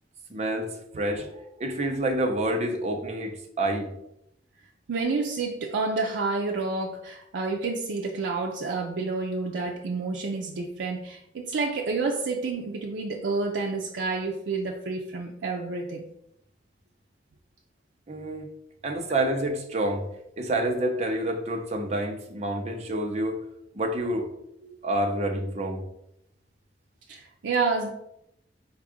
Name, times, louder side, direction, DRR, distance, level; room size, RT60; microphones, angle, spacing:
voice 1, 0.3-3.9 18.1-18.5 18.8-20.0 20.4-23.4 23.7-24.3 24.8-25.8, right 1 dB, 35° right, 2 dB, 0.7 m, -28 dB
voice 2, 4.9-16.0 24.6-24.8 27.1-27.9, right 3 dB, 80° right, 1 dB, 0.5 m, -29 dB
4.5 x 2.4 x 4.9 m, 0.80 s
head